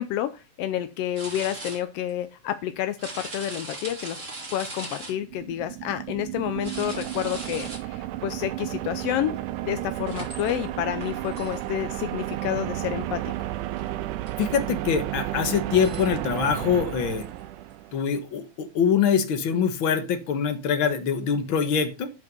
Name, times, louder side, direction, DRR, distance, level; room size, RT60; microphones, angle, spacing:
voice 1, 0.0-4.2 4.5-13.3, left 12 dB, 80° left, 10 dB, 1.3 m, -29 dB
sound 1, 1.1-1.8 2.1-2.2 3.0-5.1 6.6-7.8 9.5-9.6 10.1-10.6 11.0-11.6 12.6-13.0 13.4-13.5 13.8-13.9 14.3-14.4 15.2-15.3 15.7-16.1 17.1-17.2 17.7-17.8, right 2 dB, 25° right, 2.6 m, -39 dB
sound 2, 4.9-18.1, right 15 dB, 90° right, 2.2 m, -33 dB
voice 2, 14.4-17.3 17.9-22.1, left 7 dB, 55° left, 8 dB, 1.6 m, -24 dB
10.5 x 5.3 x 5.3 m, 0.30 s
omnidirectional pair, 3.5 m